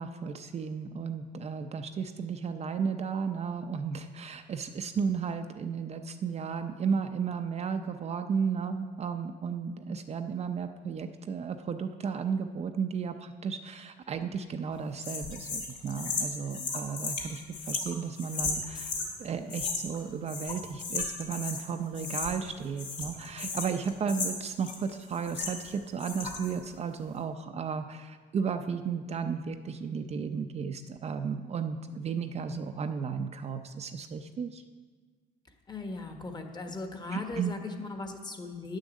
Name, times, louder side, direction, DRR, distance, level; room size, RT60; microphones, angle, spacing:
voice 1, 0.0-18.9 19.2-34.6 37.1-37.5, right 6 dB, 40° right, 7 dB, 0.6 m, -34 dB
sound 1, 15.0-19.1 19.5-20.0 20.3-21.7 21.9-22.5 22.8-25.7 26.0-26.5, left 4 dB, 55° left, 2.9 m, -35 dB
voice 2, 35.7-38.8, left 3 dB, 25° left, 5 dB, 1.3 m, -38 dB
9.4 x 6.4 x 7.3 m, 1.5 s
cardioid pair, 110°, 17 cm